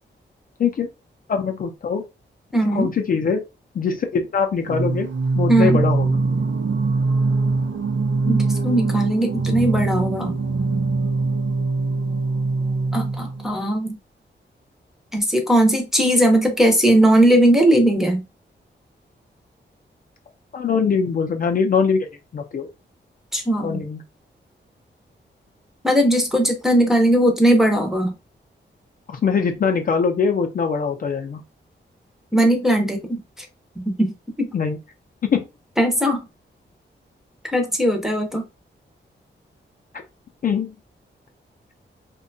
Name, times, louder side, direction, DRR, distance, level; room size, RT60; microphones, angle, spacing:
voice 1, 1.3-2.0 2.7-3.4 3.7-5.1 5.4-6.2 20.5-22.1 22.3-22.7 23.6-24.0 29.1-31.4 34.5-34.8 35.2-35.4 40.4-40.7, left 5 dB, 50° left, 0.4 m, -22 dB
voice 2, 2.5-3.2 5.5-5.8 8.3-10.3 12.9-14.0 15.1-18.2 23.3-23.8 25.8-28.1 32.3-33.5 33.9-34.1 34.4-34.5 35.8-36.3 37.5-38.4, right 1 dB, ahead, 0.5 m, -18 dB
Singing, 4.6-13.6, right 3 dB, 85° right, 0.6 m, -22 dB
2.7 x 2.2 x 2.5 m
wide cardioid pair, 165°, 19 cm